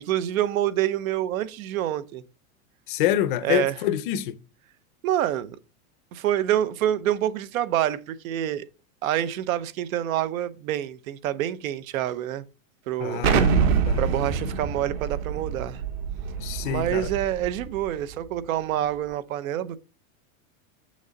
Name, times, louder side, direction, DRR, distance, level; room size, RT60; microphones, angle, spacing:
voice 1, 0.0-2.2 3.4-3.7 5.0-5.6 6.1-8.7 9.0-12.4 12.9-13.2 14.0-15.8 16.6-19.8, right 12 dB, 75° right, 0.9 m, -27 dB
voice 2, 2.9-4.3 13.0-13.5 13.9-14.1 16.4-17.1, left 12 dB, 40° left, 0.5 m, -26 dB
Explosion, 13.2-17.9, right 6 dB, 50° right, 1.1 m, -25 dB
6.6 x 6.3 x 3.9 m
supercardioid pair, 170°, 41 cm